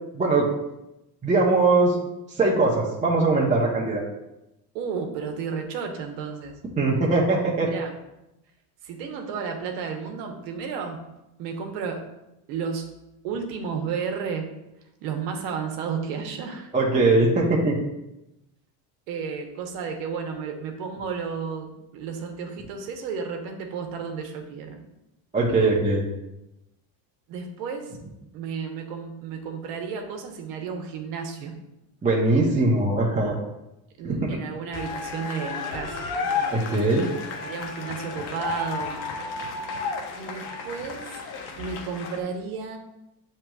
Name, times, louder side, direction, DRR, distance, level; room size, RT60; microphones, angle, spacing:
voice 1, 0.1-0.5 1.2-2.0 2.3-4.0 6.8-7.7 16.7-17.8 25.3-26.0 32.0-33.4 34.0-34.3 36.5-37.1, right 3 dB, 15° right, -4 dB, 0.7 m, -21 dB
voice 2, 4.7-6.5 7.7-8.0 8.8-11.0 11.4-12.0 12.5-12.9 13.2-14.5 15.0-16.7 19.1-24.8 27.3-27.9 28.3-31.5 34.0-36.6 37.4-39.0 40.1-41.1 41.5-42.8, right 6 dB, 85° right, 4 dB, 0.9 m, -32 dB
sound 1, 34.7-42.2, left 5 dB, 85° left, 0.9 m, -32 dB
7.4 x 3.1 x 2.3 m, 0.91 s
supercardioid pair, 105°, 48 cm